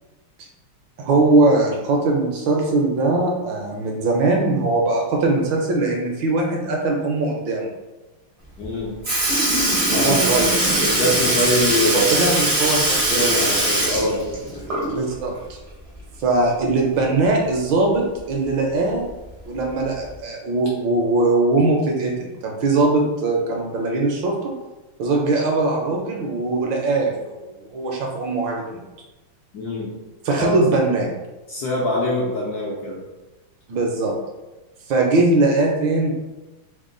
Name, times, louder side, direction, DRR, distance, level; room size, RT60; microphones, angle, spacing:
voice 1, 1.0-7.7 9.9-10.6 12.2-12.8 13.1-13.4 14.9-15.3 16.2-19.1 19.5-22.1 22.4-24.5 25.0-28.8 30.2-31.1 33.7-34.1 34.9-36.1, right 2 dB, 70° right, 0 dB, 1.2 m, -20 dB
voice 2, 8.6-9.0 9.9-10.3 10.9-12.4 13.1-14.2 29.5-29.9 30.4-30.6 31.5-33.0, left 1 dB, 75° left, -4 dB, 0.9 m, -24 dB
Sink (filling or washing) / Liquid, 8.6-8.7 9.0-15.1 15.5-15.6 17.1-17.2 18.2-18.3 19.1-19.3 20.1-20.2, right 1 dB, 50° right, 0.4 m, -21 dB
3.5 x 2.1 x 3.7 m, 1.1 s
omnidirectional pair, 2.4 m